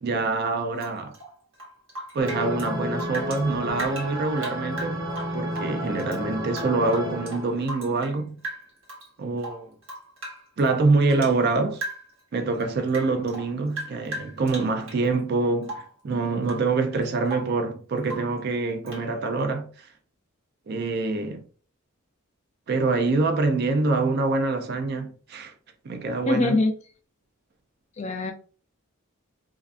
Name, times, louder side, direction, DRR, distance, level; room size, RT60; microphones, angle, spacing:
voice 1, 0.0-1.1 2.1-8.4 9.2-9.7 10.6-11.8 12.3-19.9 20.7-21.4 22.7-25.5 25.8-26.6, right 3 dB, 45° right, 0.4 m, -25 dB
Rain / Drip, 0.8-3.4 3.7-6.2 6.5-8.2 8.4-9.1 9.4-11.4 11.7-12.2 12.5-15.0 15.6-16.0 16.4-16.7 17.0-17.6 18.0-18.4 18.9-19.1, right 1 dB, 65° right, 1.0 m, -38 dB
sound 1, 2.2-7.6, equal, 15° right, 0.7 m, -32 dB
voice 2, 26.3-26.7 28.0-28.3, left 2 dB, 30° left, 0.3 m, -23 dB
2.4 x 2.4 x 2.3 m
head